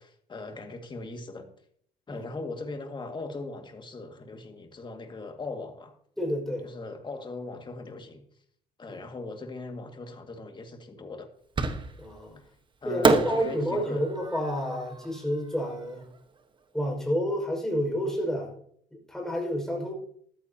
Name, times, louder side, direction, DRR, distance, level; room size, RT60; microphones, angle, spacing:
voice 1, 0.0-1.5 2.1-6.0 6.6-8.2 8.8-11.3 12.3-12.4 12.8-14.0, left 3 dB, 30° left, 2.1 m, -39 dB
voice 2, 6.2-6.7 8.9-9.0 12.0-12.4 12.8-16.0 16.7-18.5 18.9-19.9, equal, 5° left, 5.6 m, -29 dB
Fireworks, 11.6-12.2 13.0-16.2, right 4 dB, 30° right, 1.3 m, -29 dB
14.0 x 13.5 x 2.9 m
cardioid pair, 110°, 17 cm